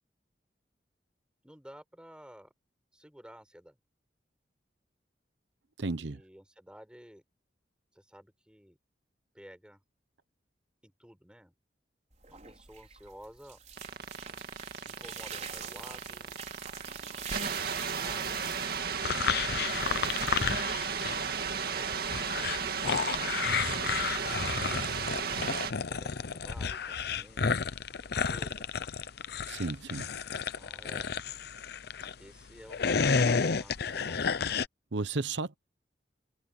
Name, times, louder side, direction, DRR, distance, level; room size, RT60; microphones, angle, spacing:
voice 1, 1.4-2.5 2.9-3.8 6.0-7.2 7.9-8.8 9.3-9.8 10.8-11.5 12.3-13.6 14.9-16.4 17.2-18.5 23.7-27.7 28.0-28.7 30.3-31.1 32.2-34.2, equal, 5° right, 5.8 m, -53 dB
voice 2, 5.8-6.2 29.5-30.2 34.9-35.6, right 3 dB, 85° right, 0.9 m, -33 dB
sound 1, 12.1-21.3, right 7 dB, 40° right, 4.6 m, -45 dB
sound 2, 13.8-25.7, right 6 dB, 60° right, 2.1 m, -34 dB
sound 3, 19.0-21.2 21.5-32.1 32.6-34.7, left 5 dB, 65° left, 0.7 m, -31 dB
open air
head